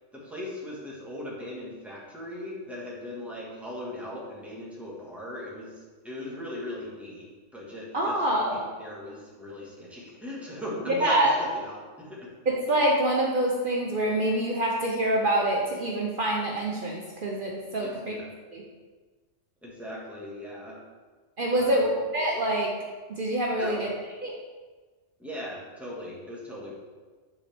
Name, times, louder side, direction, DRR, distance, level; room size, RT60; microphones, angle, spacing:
voice 1, 0.1-5.7 6.0-7.2 7.5-12.3 17.8-18.3 19.6-20.8 21.5-21.9 23.6-23.9 25.2-26.7, left 1 dB, ahead, -6 dB, 1.6 m, -39 dB
voice 2, 7.9-8.7 10.9-11.3 12.5-18.1 18.5-18.6 21.4-21.9 22.1-22.7 23.2-23.9 24.2-24.3, right 1 dB, 50° right, -2 dB, 0.9 m, -26 dB
10.0 x 4.2 x 3.4 m, 1.4 s
omnidirectional pair, 1.3 m